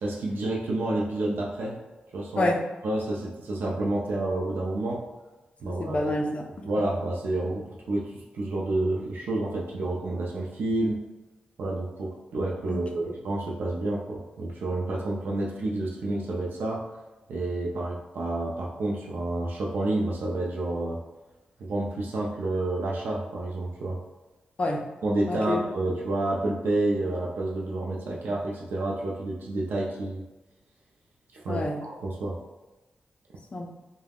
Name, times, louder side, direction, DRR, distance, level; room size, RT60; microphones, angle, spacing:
voice 1, 0.0-1.8 2.1-2.5 2.8-5.0 5.6-6.0 6.6-11.0 11.6-16.9 17.3-21.0 21.6-24.0 25.0-30.2 31.3-32.4, right 2 dB, 85° right, -3 dB, 0.4 m, -29 dB
voice 2, 5.6-6.7 12.7-13.1 24.6-24.9 25.3-25.6 31.5-31.8 33.5-33.7, left 2 dB, 35° left, 0 dB, 0.4 m, -28 dB
2.3 x 2.1 x 3.4 m, 1.1 s
wide cardioid pair, 115°, 3 cm